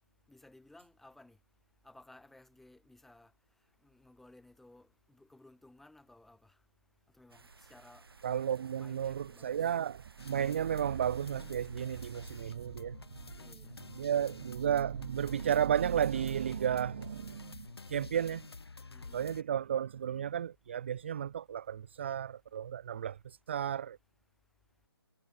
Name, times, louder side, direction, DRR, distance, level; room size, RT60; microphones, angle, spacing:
voice 1, 0.3-1.4 1.8-3.3 3.8-6.5 7.2-8.0 8.7-9.7 13.4-13.8 18.9-19.4, left 2 dB, ahead, 2.5 m, -58 dB
sound 1, 7.3-12.4, right 4 dB, 65° right, 4.1 m, -59 dB
voice 2, 8.2-13.3 14.0-18.5 19.1-24.0, right 9 dB, 30° right, 0.4 m, -33 dB
sound 2, 10.2-19.4, left 3 dB, 75° left, 2.1 m, -50 dB
figure-of-eight pair, 155°, 13 cm